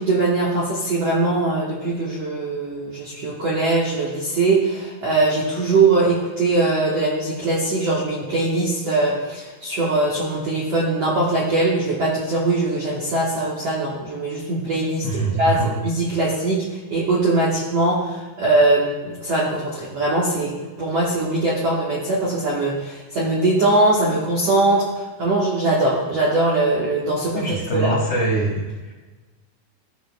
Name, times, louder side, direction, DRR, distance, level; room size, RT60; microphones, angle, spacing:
voice 1, 0.0-15.0 15.4-20.5 20.8-27.4 27.7-28.0, right 2 dB, 70° right, -6 dB, 1.5 m, -21 dB
voice 2, 15.0-15.7 16.1-16.3 27.3-28.9, right 2 dB, 65° left, -4 dB, 1.6 m, -24 dB
15.0 x 5.6 x 2.2 m, 1.2 s
omnidirectional pair, 4.8 m